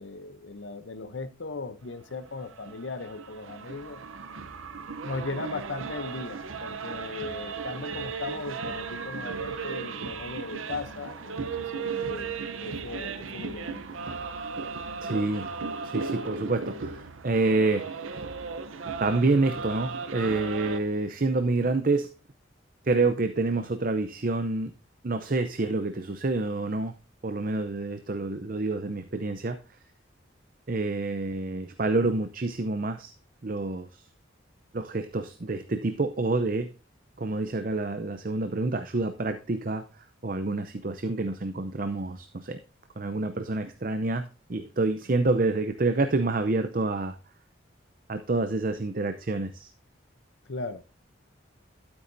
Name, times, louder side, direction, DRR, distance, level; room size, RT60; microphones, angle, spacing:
voice 1, 0.0-4.0 5.0-13.8 50.5-50.8, left 3 dB, 65° left, 0.7 m, -38 dB
sound 1, 2.1-20.8, right 5 dB, 85° right, 0.8 m, -36 dB
voice 2, 15.0-15.5 15.8-18.1 19.0-22.1 22.8-24.7 25.0-26.9 27.2-29.6 30.7-33.1 33.4-34.0 34.7-36.7 37.2-39.8 40.2-42.6 43.0-47.2 48.1-49.7, right 3 dB, 45° right, 0.6 m, -28 dB
12.5 x 8.3 x 2.7 m
head